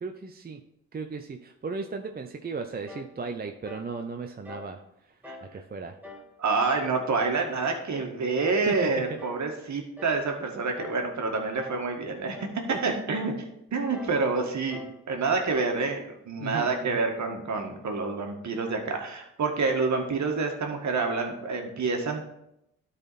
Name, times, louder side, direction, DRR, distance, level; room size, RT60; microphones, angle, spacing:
voice 1, 0.0-0.6 0.9-4.8 5.4-6.0 8.7-8.9 12.7-12.9 16.4-17.0, right 4 dB, 25° right, 5 dB, 0.7 m, -36 dB
sound 1, 2.9-3.2 3.6-3.9 4.4-4.7 5.2-5.5 6.0-6.3 6.8-7.1 7.6-7.9 8.4-8.7 9.2-9.5 10.0-10.3 10.8-11.1 11.5-11.9 12.3-12.6 13.1-13.4 13.9-14.2 14.7-15.0, left 3 dB, 5° right, 1.6 m, -45 dB
voice 2, 5.3-5.6 6.4-12.5 12.8-14.8 15.1-22.2, right 4 dB, 50° right, 3 dB, 1.8 m, -28 dB
12.0 x 4.2 x 4.2 m, 0.82 s
hypercardioid pair, 55°, 37 cm